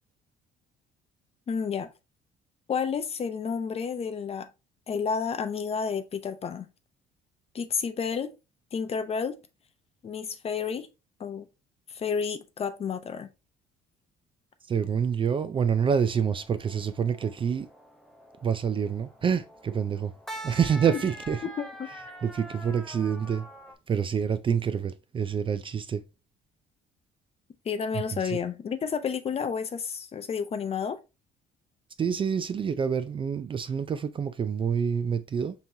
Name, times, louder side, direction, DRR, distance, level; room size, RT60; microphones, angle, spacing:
voice 1, 1.5-1.9 2.7-4.5 4.9-6.7 7.5-8.3 8.7-9.4 10.0-10.9 11.2-11.5 11.9-13.3 20.9-21.0 21.6-21.9 27.6-31.0, left 6 dB, 35° left, 0.6 m, -30 dB
voice 2, 14.7-17.7 18.4-20.1 20.4-21.4 22.2-23.5 23.9-26.0 27.9-28.4 32.0-35.5, right 7 dB, 30° right, 0.4 m, -27 dB
sound 1, 15.6-23.7, right 1 dB, ahead, 0.8 m, -45 dB
5.4 x 3.0 x 2.6 m
cardioid pair, 110°, 17 cm